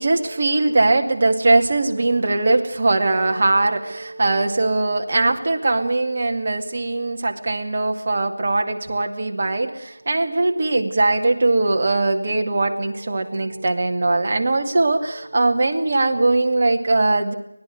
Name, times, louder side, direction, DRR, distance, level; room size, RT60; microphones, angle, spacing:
voice 1, 0.0-17.3, right 2 dB, 35° right, 4 dB, 2.3 m, -20 dB
25.0 x 19.5 x 8.0 m, 0.75 s
figure-of-eight pair, 175°, 0 cm